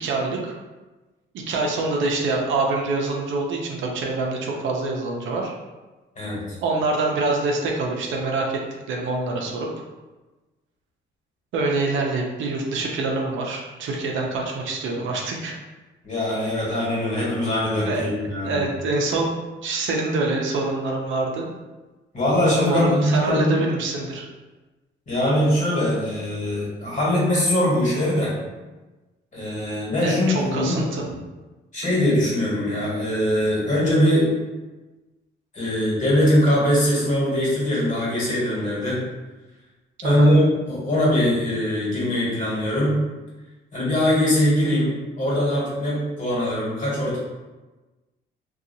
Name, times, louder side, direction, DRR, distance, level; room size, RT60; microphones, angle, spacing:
voice 1, 0.0-0.5 1.3-5.5 6.6-8.6 8.9-9.7 11.5-15.6 17.8-18.1 18.4-19.3 19.6-21.5 22.6-24.3 30.0-31.2 40.0-40.4, right 3 dB, 75° right, 0 dB, 0.6 m, -25 dB
voice 2, 16.0-18.6 22.1-23.6 25.1-28.3 29.3-30.8 31.7-34.3 35.5-39.0 40.0-42.9 43.7-47.2, left 1 dB, 40° left, -7 dB, 1.4 m, -21 dB
2.6 x 2.4 x 2.7 m, 1.2 s
cardioid pair, 90°, 20 cm